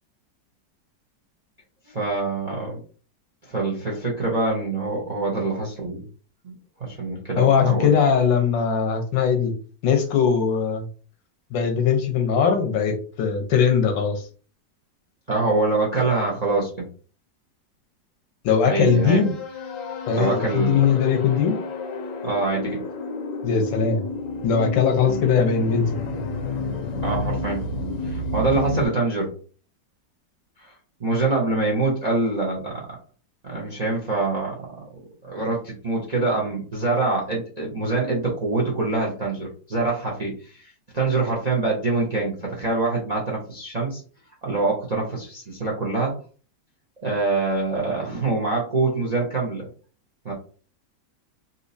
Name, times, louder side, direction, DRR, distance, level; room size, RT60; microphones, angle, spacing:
voice 1, 1.9-2.8 3.4-6.1 6.4-6.5 6.8-7.9 15.3-16.9 18.6-19.3 20.2-20.9 22.2-22.8 25.0-25.2 27.0-27.6 28.0-29.3 30.6-30.7 31.0-32.7 33.4-34.5 35.2-44.0 44.4-46.1 47.0-49.7 50.2-50.3, right 3 dB, 40° right, -2 dB, 0.5 m, -25 dB
voice 2, 7.4-9.5 9.8-10.9 11.5-14.2 18.4-19.3 20.1-21.6 23.4-24.0 24.4-26.0, left 6 dB, 85° left, 5 dB, 1.5 m, -20 dB
sound 1, 18.6-28.9, left 2 dB, 60° left, 0.9 m, -31 dB
4.1 x 2.7 x 2.6 m, 0.40 s
omnidirectional pair, 2.0 m